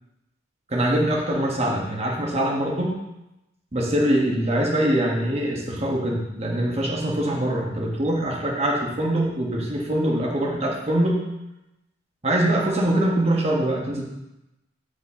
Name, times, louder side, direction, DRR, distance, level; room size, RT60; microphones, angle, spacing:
voice 1, 0.7-3.0 3.7-11.2 12.2-14.0, right 1 dB, 35° right, -2 dB, 1.2 m, -23 dB
8.6 x 5.0 x 2.8 m, 0.94 s
head